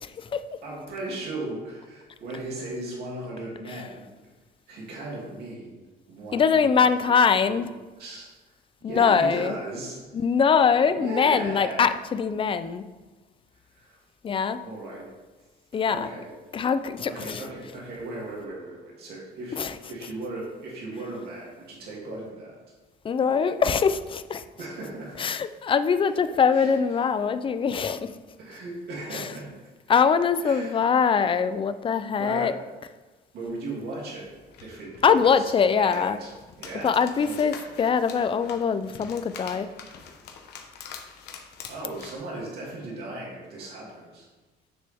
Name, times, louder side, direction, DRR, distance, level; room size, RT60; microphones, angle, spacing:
voice 1, 0.6-4.1 4.7-6.8 7.2-7.7 8.0-8.5 8.8-10.0 11.0-11.8 13.7-14.0 14.6-15.1 15.9-16.3 17.0-22.5 24.6-25.2 26.1-27.0 28.4-29.7 30.4-30.8 32.1-32.7 33.3-34.3 34.6-35.5 35.8-36.3 36.6-36.9 37.2-37.7 40.9-41.0 41.7-44.3, right 2 dB, 70° right, -4 dB, 2.9 m, -37 dB
voice 2, 6.3-7.7 8.8-9.6 10.1-12.9 14.2-14.6 15.7-16.1 16.5-17.4 19.6-19.7 23.0-24.4 25.2-28.1 29.1-29.3 29.9-32.5 35.0-36.2 36.8-39.7, left 6 dB, 30° left, 12 dB, 0.5 m, -23 dB
sound 1, 34.2-42.1, left 6 dB, 75° left, 1.1 m, -45 dB
9.8 x 6.6 x 3.6 m, 1.2 s
cardioid pair, 110°, 17 cm